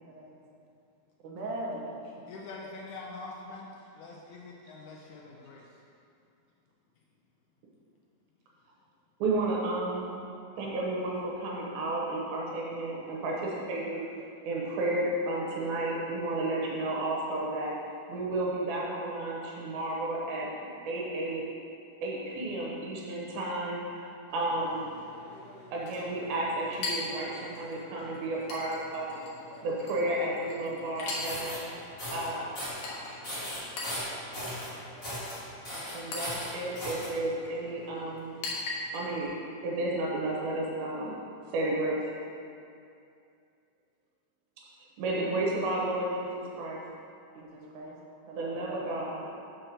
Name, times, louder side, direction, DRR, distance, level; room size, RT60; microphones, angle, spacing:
voice 1, 1.2-1.8 47.4-48.0 48.3-48.9, right 1 dB, 70° right, -3 dB, 2.0 m, -39 dB
voice 2, 2.3-3.7 3.9-5.6, left 3 dB, 85° left, -2 dB, 1.7 m, -44 dB
voice 3, 9.2-10.1 10.6-14.0 14.5-17.7 18.1-20.5 20.9-21.4 22.0-24.9 25.7-29.2 29.6-31.6 32.1-32.5 35.9-38.4 38.9-39.3 39.6-41.1 41.5-42.0 45.0-46.8 48.4-49.3, right 2 dB, 90° right, -3 dB, 2.8 m, -32 dB
Chink clink, 24.3-39.3, left 2 dB, 65° left, 2.4 m, -42 dB
sound 1, 31.0-31.6 32.0-32.3 32.6-32.9 33.2-34.7 35.0-35.4 35.6-37.1, left 1 dB, 30° left, 1.7 m, -37 dB
6.4 x 4.5 x 6.5 m, 2.5 s
omnidirectional pair, 4.3 m